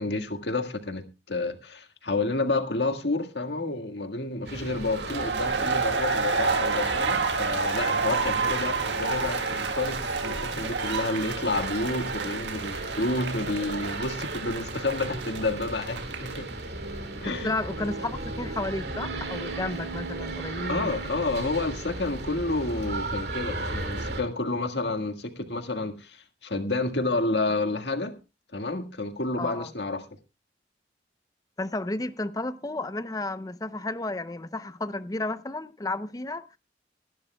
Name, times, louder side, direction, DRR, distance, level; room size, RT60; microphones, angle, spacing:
voice 1, 0.0-16.5 17.2-17.5 20.7-28.2 28.5-30.1, left 2 dB, 75° left, 1.8 m, -30 dB
sound 1, 4.5-24.2, right 2 dB, 65° right, 2.3 m, -36 dB
sound 2, 4.9-16.5, right 4 dB, 85° right, 1.7 m, -29 dB
voice 2, 17.2-21.0 29.4-29.7 31.6-36.6, left 2 dB, 20° left, 0.6 m, -32 dB
22.0 x 12.0 x 2.2 m
head